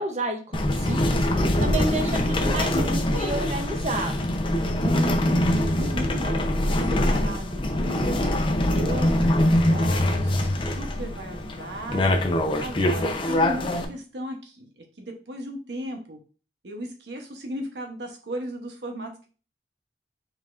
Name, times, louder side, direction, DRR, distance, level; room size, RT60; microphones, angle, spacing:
voice 1, 0.0-4.3, right 2 dB, 40° right, 5 dB, 0.7 m, -31 dB
sound 1, 0.5-13.8, left 1 dB, 30° left, 0.6 m, -23 dB
voice 2, 4.8-6.4 6.9-12.0 12.6-16.2 16.6-19.3, right 1 dB, 75° right, 3 dB, 0.9 m, -36 dB
5.3 x 4.0 x 2.5 m, 0.37 s
head